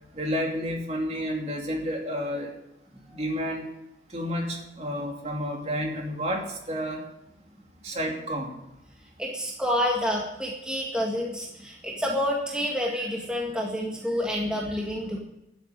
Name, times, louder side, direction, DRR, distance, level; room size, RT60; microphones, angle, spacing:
voice 1, 0.2-2.5 3.1-3.6 4.1-7.0 7.8-8.5, equal, 35° right, 0 dB, 2.8 m, -30 dB
voice 2, 9.0-15.2, left 1 dB, 5° right, -2 dB, 1.9 m, -29 dB
12.5 x 8.0 x 10.0 m, 0.87 s
head